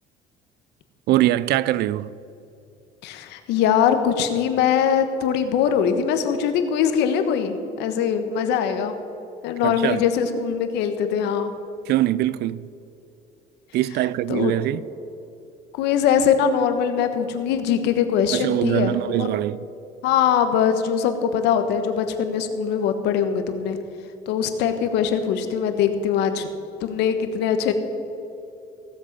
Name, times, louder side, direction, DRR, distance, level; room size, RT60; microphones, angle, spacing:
voice 1, 1.1-2.1 9.6-10.0 11.9-12.7 13.7-14.8 18.3-19.7, right 15 dB, 70° right, 0.4 m, -22 dB
voice 2, 3.0-9.0 9.4-11.5 14.3-14.5 15.8-19.3 20.0-23.8 24.3-26.5 26.8-27.7, left 8 dB, 80° left, 1.2 m, -22 dB
16.5 x 7.6 x 5.4 m
supercardioid pair, 85°, 17 cm